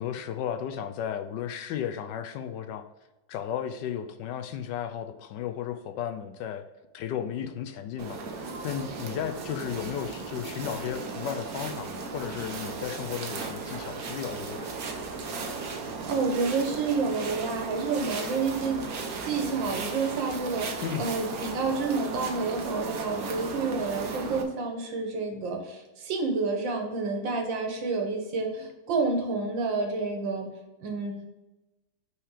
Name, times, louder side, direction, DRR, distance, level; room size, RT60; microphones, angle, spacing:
voice 1, 0.0-2.8 3.3-6.6 6.9-14.8 20.8-21.1, left 9 dB, 75° left, 7 dB, 1.2 m, -34 dB
sound 1, 8.0-24.4, right 4 dB, 55° right, 1.3 m, -36 dB
voice 2, 16.0-30.5 30.8-31.3, right 4 dB, 80° right, 3 dB, 2.0 m, -29 dB
6.0 x 4.8 x 4.9 m, 1.1 s
omnidirectional pair, 2.0 m